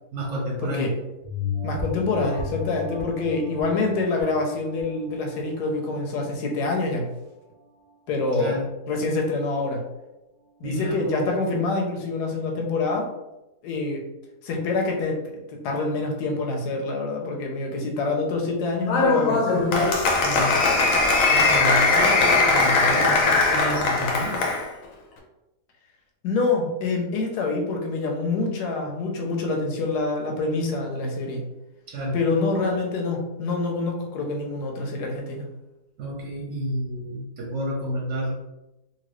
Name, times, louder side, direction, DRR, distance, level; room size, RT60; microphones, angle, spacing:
voice 1, 0.1-1.0 8.3-8.7 10.6-11.4 20.1-20.6 21.3-24.5 31.9-32.2 36.0-38.4, equal, 60° right, -2 dB, 0.9 m, -30 dB
sound 1, 1.2-6.2 6.7-6.8, left 5 dB, 80° right, 0.4 m, -34 dB
voice 2, 1.6-7.1 8.1-8.6 8.9-9.8 10.6-13.1 13.6-14.0 14.4-15.2 15.5-19.8 26.2-31.4 32.1-35.5, left 3 dB, 85° left, 1 dB, 1.3 m, -26 dB
Applause, 18.9-24.7, left 3 dB, 65° left, 1.0 m, -20 dB
2.9 x 2.6 x 3.1 m, 0.96 s
omnidirectional pair, 1.7 m